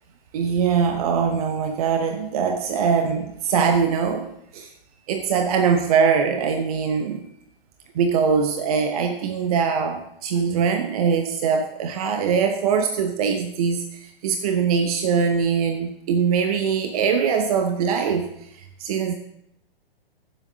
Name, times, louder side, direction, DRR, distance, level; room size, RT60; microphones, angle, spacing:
voice 1, 0.3-4.7 5.1-7.3 7.9-19.1, right 6 dB, 40° right, 6 dB, 0.9 m, -22 dB
21.5 x 7.5 x 2.8 m, 0.74 s
figure-of-eight pair, 125°, 30 cm